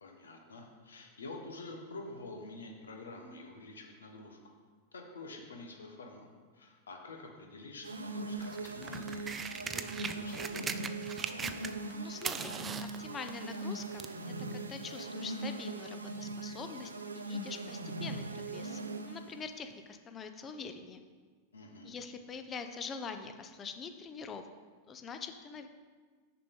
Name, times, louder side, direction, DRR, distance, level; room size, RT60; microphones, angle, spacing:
voice 1, 0.0-4.4 4.9-6.3 6.5-10.8 21.5-22.0, left 2 dB, 80° left, 2 dB, 1.2 m, -48 dB
sound 1, 7.8-19.4, right 2 dB, 90° right, 0.5 m, -40 dB
sound 2, 8.4-11.9 12.2-14.2 15.0-15.1, right 5 dB, 20° right, 0.4 m, -40 dB
voice 2, 11.9-12.6 13.0-14.0 14.5-21.0 21.8-24.5 24.9-25.7, left 5 dB, 25° left, 8 dB, 0.7 m, -44 dB
6.7 x 5.1 x 5.4 m, 1.5 s
hypercardioid pair, 95°, 0 cm